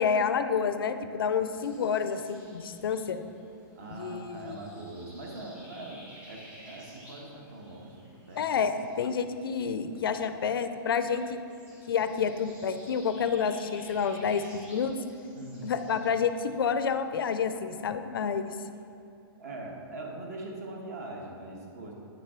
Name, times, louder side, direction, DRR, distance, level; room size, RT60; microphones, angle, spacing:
voice 1, 0.0-3.2 3.9-4.6 8.4-11.4 11.9-14.9 15.6-18.5, left 6 dB, 65° left, 10 dB, 0.4 m, -29 dB
sound 1, 1.5-17.0, equal, 10° right, 1.2 m, -54 dB
voice 2, 3.7-8.4 15.3-15.8 19.4-21.9, right 2 dB, 40° right, 0 dB, 1.1 m, -42 dB
9.3 x 5.6 x 3.6 m, 2.6 s
hypercardioid pair, 175°, 13 cm